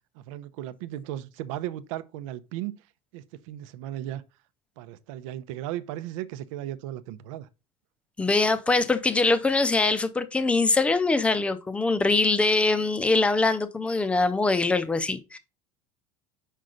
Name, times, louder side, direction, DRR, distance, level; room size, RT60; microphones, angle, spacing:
voice 1, 0.1-2.8 3.1-4.2 4.8-7.5, right 13 dB, 90° right, 0.7 m, -36 dB
voice 2, 8.2-15.4, left 3 dB, 5° left, 0.5 m, -23 dB
6.3 x 5.6 x 3.8 m
cardioid pair, 165°, 17 cm